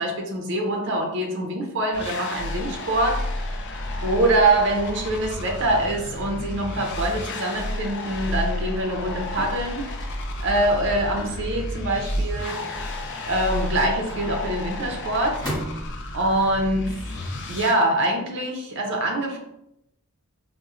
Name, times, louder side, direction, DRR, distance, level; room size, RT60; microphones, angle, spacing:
voice 1, 0.0-3.2 4.0-9.9 10.4-12.6 13.2-15.4 16.1-17.2 17.5-19.4, right 1 dB, 55° right, 2 dB, 0.5 m, -24 dB
sound 1, 1.9-17.7, left 1 dB, 50° left, 0.4 m, -31 dB
sound 2, 9.4-9.8 11.2-11.5 12.6-13.2 14.1-14.8 15.4-16.1, right 1 dB, 15° left, 1.1 m, -35 dB
4.1 x 2.0 x 2.4 m, 0.80 s
head